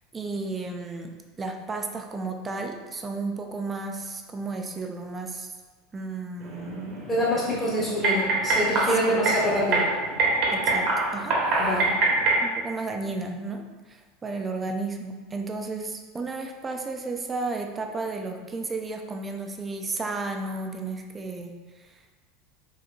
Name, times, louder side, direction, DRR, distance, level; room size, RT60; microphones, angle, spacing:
voice 1, 0.1-5.5 5.9-7.1 9.1-9.3 10.5-10.9 11.1-11.8 12.4-22.2, right 3 dB, 25° right, 4 dB, 0.4 m, -33 dB
sound 1, 6.4-12.4, right 2 dB, 60° right, 0.9 m, -25 dB
voice 2, 7.1-9.9 11.6-11.9, equal, 20° left, -8 dB, 0.9 m, -25 dB
3.8 x 2.6 x 2.2 m, 1.3 s
hypercardioid pair, 90°, 0 cm